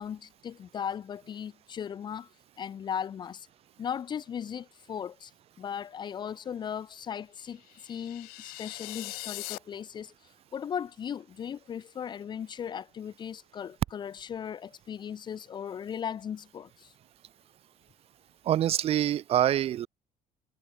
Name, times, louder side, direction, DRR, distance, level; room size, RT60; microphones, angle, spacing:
voice 1, 0.0-2.3 2.6-3.5 3.8-5.3 5.6-10.1 10.5-16.9, left 8 dB, 30° left, 2.2 m, -37 dB
sound 1, 7.6-9.6, left 23 dB, 85° left, 4.5 m, -41 dB
voice 2, 18.5-19.9, right 11 dB, 40° right, 2.6 m, -25 dB
cardioid pair, 175°, 15 cm